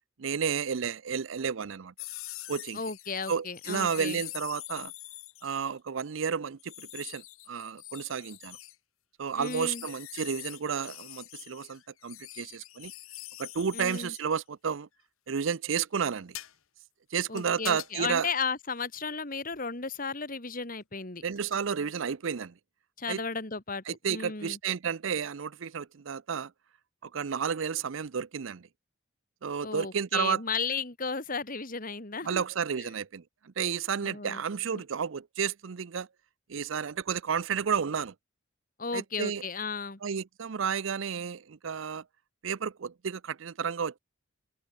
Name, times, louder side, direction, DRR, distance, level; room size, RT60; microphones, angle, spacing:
voice 1, 0.2-1.9 2.5-2.8 3.3-4.9 5.4-8.6 9.2-12.9 13.4-14.9 15.3-16.3 17.1-18.3 21.2-22.5 23.1-23.2 23.9-26.5 27.0-28.7 29.4-30.4 32.2-36.1 36.5-38.1 38.9-39.4 40.0-42.0 42.4-44.0, right 6 dB, 70° right, 0.5 m, -32 dB
sound 1, 2.0-5.7 6.6-8.7 9.4-14.4 16.3-16.5 17.4-17.9 19.5-19.6 21.4-21.7, left 16 dB, 85° left, 1.3 m, -44 dB
voice 2, 2.7-4.2 9.4-9.8 13.7-14.1 17.3-21.2 23.0-24.6 29.6-32.4 32.8-32.9 34.0-34.4 34.7-34.8 38.8-40.0, left 5 dB, 40° left, 2.1 m, -34 dB
open air
head